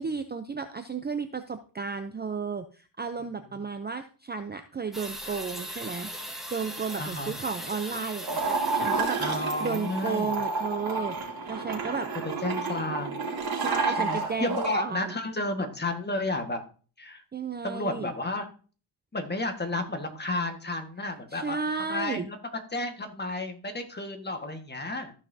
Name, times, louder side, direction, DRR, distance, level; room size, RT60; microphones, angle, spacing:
voice 1, 0.0-9.2 9.6-11.1 11.5-12.1 13.6-15.2 17.3-18.1 21.3-22.3, right 5 dB, 20° right, 8 dB, 0.6 m, -33 dB
sound 1, 4.9-10.3, equal, ahead, 2.0 m, -40 dB
voice 2, 7.0-7.3 9.2-10.4 12.4-13.2 14.0-16.6 17.0-17.2 17.6-18.5 19.1-22.4 22.7-25.1, left 2 dB, 20° left, 5 dB, 1.6 m, -32 dB
sound 2, 8.2-14.7, right 4 dB, 50° right, 3.0 m, -30 dB
14.0 x 5.7 x 2.8 m, 0.38 s
cardioid pair, 90°, 47 cm